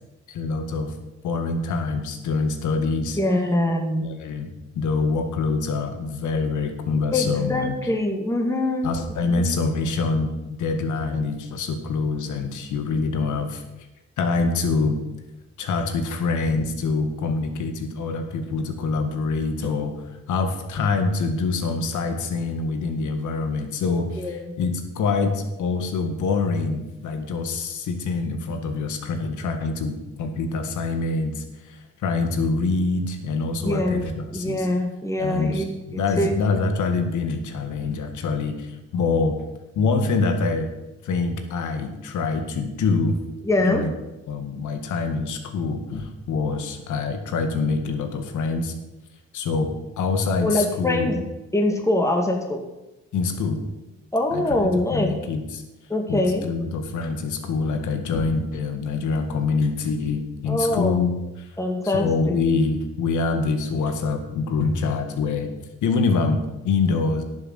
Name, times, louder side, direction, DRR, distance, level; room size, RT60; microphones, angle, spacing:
voice 1, 0.3-0.9 1.2-3.2 4.0-7.8 8.8-13.6 14.2-15.0 15.6-34.7 35.2-39.4 39.8-40.7 41.0-43.2 43.6-43.9 44.3-48.7 49.3-51.2 53.1-53.6 54.3-55.6 56.1-61.1 61.4-61.5 61.8-65.5 65.8-67.2, left 4 dB, 75° left, 6 dB, 1.9 m, -25 dB
voice 2, 3.1-4.1 7.1-8.9 9.3-9.6 24.2-24.4 33.6-36.3 43.4-43.8 50.4-51.2 51.5-52.6 54.1-55.2 55.9-56.5 60.5-61.0 61.6-62.3, left 1 dB, 10° left, 2 dB, 2.2 m, -24 dB
11.0 x 7.2 x 7.6 m, 1.0 s
cardioid pair, 90°, 30 cm